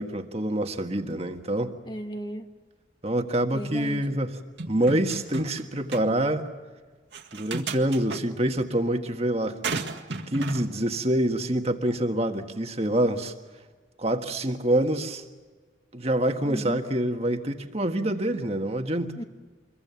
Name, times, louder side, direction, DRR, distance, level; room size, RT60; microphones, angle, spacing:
voice 1, 0.0-1.7 3.0-4.4 4.7-6.5 7.3-9.8 10.3-13.3 14.0-15.2 15.9-19.1, right 1 dB, 35° right, 1.6 m, -26 dB
voice 2, 1.9-2.5 3.5-4.1 16.4-16.8 19.1-19.2, equal, 25° left, 1.5 m, -35 dB
sound 1, 4.6-5.6 5.9-6.0 7.1-8.2 9.6-10.6, right 4 dB, 70° right, 2.0 m, -33 dB
27.0 x 23.0 x 7.1 m
head